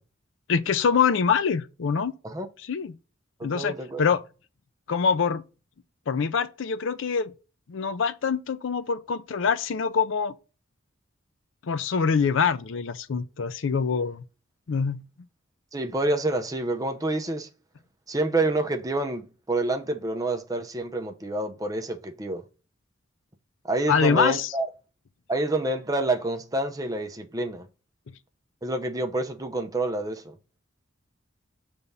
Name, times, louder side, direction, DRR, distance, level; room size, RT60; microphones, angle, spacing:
voice 1, 0.5-2.1 2.7-2.9 3.4-4.2 4.9-5.4 6.1-7.3 7.7-10.3 11.6-14.2 14.7-15.0 23.9-24.5, left 6 dB, 65° left, 0.4 m, -24 dB
voice 2, 3.4-4.0 15.7-17.5 18.1-22.4 23.6-24.7 25.3-27.7 28.6-30.4, right 2 dB, 15° right, 0.6 m, -28 dB
6.9 x 3.5 x 5.3 m
head